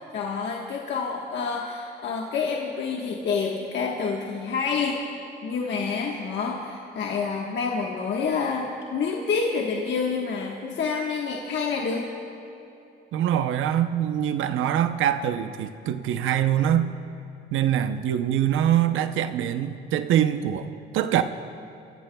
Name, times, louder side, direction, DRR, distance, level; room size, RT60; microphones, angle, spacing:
voice 1, 0.1-5.0 5.4-12.1, left 5 dB, 65° left, -1 dB, 1.3 m, -28 dB
voice 2, 13.1-16.9 17.5-21.2, right 10 dB, 85° right, 10 dB, 0.7 m, -24 dB
29.5 x 16.5 x 2.3 m, 2.9 s
cardioid pair, 90°, 20 cm